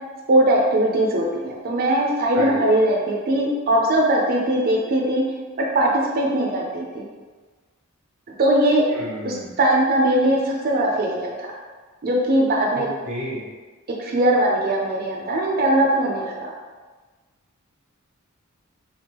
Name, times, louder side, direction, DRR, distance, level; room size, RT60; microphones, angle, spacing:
voice 1, 0.3-5.2 5.7-7.1 8.4-8.8 9.2-11.5 12.0-12.9 14.0-16.5, right 1 dB, 45° right, -2 dB, 0.5 m, -20 dB
voice 2, 8.9-9.5 12.7-13.4, equal, 80° right, -7 dB, 0.9 m, -31 dB
3.5 x 2.3 x 4.3 m, 1.4 s
head